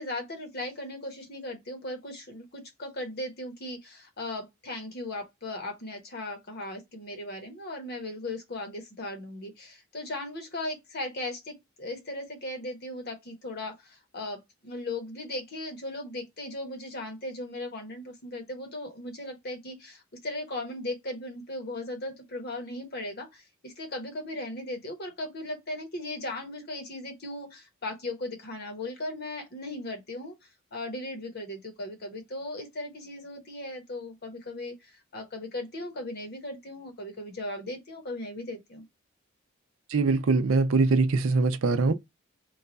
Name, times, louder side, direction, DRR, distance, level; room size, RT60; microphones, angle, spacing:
voice 1, 0.0-30.3 30.7-38.8, left 1 dB, 50° left, 1.0 m, -37 dB
voice 2, 39.9-41.9, right 3 dB, 75° right, 0.5 m, -23 dB
3.1 x 2.3 x 3.9 m
head